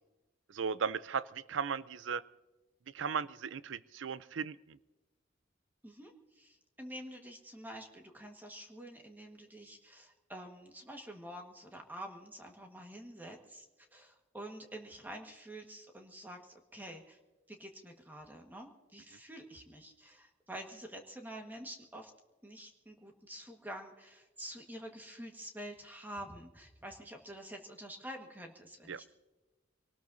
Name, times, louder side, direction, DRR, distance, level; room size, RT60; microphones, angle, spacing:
voice 1, 0.5-2.2 2.9-4.8 28.9-29.0, right 6 dB, 85° right, 17 dB, 0.5 m, -36 dB
voice 2, 5.8-13.7 13.9-17.2 17.5-22.1 22.4-29.1, right 1 dB, 10° right, 2 dB, 1.5 m, -48 dB
26.0 x 18.5 x 2.7 m, 1.1 s
head